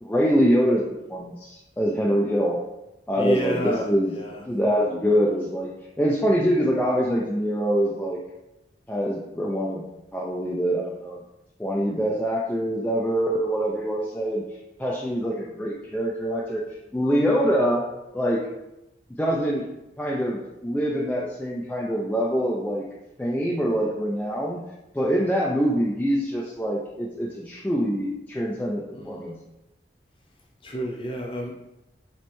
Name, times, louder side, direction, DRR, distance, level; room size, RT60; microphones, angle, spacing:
voice 1, 0.0-0.8 1.1-2.6 3.1-4.1 4.5-5.7 6.0-8.2 8.9-9.8 10.1-11.2 11.6-14.4 14.8-16.6 16.9-17.9 18.1-18.4 19.2-19.7 20.0-22.9 23.2-24.6 24.9-29.4, equal, 10° left, -5 dB, 0.3 m, -24 dB
voice 2, 3.1-4.4 28.9-29.3 30.6-31.5, equal, 30° left, -1 dB, 0.7 m, -30 dB
4.3 x 3.1 x 3.0 m, 0.92 s
head